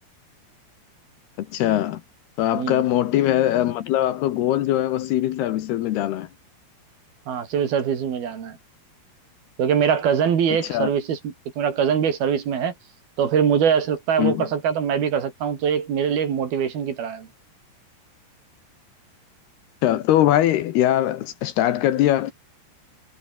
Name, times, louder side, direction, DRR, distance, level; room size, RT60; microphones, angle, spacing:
voice 1, 1.4-2.0 2.4-6.3 10.7-10.9 14.2-14.5 19.8-22.3, left 13 dB, 70° left, 2.9 m, -21 dB
voice 2, 2.5-2.8 7.3-8.6 9.6-12.7 13.2-17.3, right 7 dB, 60° right, 4.6 m, -23 dB
omnidirectional pair, 5.2 m